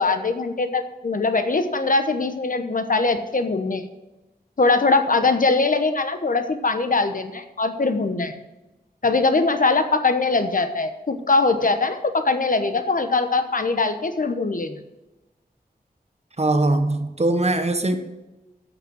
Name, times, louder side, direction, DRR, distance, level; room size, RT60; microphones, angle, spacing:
voice 1, 0.0-3.8 4.6-8.4 9.0-14.8, left 3 dB, 55° left, 8 dB, 1.0 m, -21 dB
voice 2, 16.4-18.0, right 2 dB, 40° right, 8 dB, 1.0 m, -21 dB
8.0 x 7.3 x 7.9 m, 1.1 s
wide cardioid pair, 75°, 16 cm